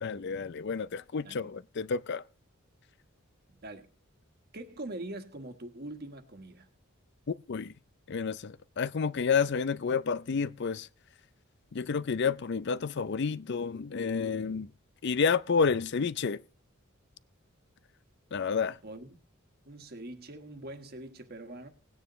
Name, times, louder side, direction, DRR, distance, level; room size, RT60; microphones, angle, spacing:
voice 1, 0.0-2.2 7.3-7.7 8.1-10.9 11.7-14.7 15.0-16.4 18.3-18.8, left 5 dB, 55° left, 0.5 m, -30 dB
voice 2, 4.5-6.7 18.8-19.2 19.6-21.7, right 1 dB, 50° right, 1.5 m, -43 dB
19.0 x 9.5 x 3.1 m
head